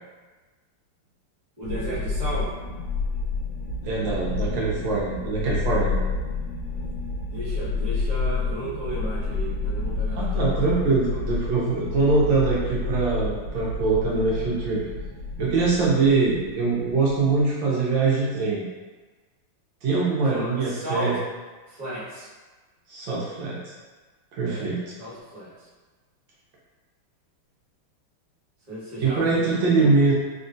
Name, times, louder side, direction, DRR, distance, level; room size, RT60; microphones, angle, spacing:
sound 1, 1.6-17.4, left 3 dB, 75° left, 1.5 m, -30 dB
voice 1, 1.6-2.5 7.2-10.7 11.1-11.2 20.3-21.2 21.7-22.3 24.4-24.7 25.0-25.5 28.7-29.4 29.7-29.9, right 1 dB, 35° right, -11 dB, 0.5 m, -34 dB
voice 2, 3.8-6.1 10.1-14.8 15.4-18.6 19.8-21.2 22.9-23.7 24.3-24.8 29.0-30.2, right 3 dB, 75° right, -6 dB, 1.3 m, -23 dB
3.6 x 2.3 x 2.5 m, 1.3 s
omnidirectional pair, 2.4 m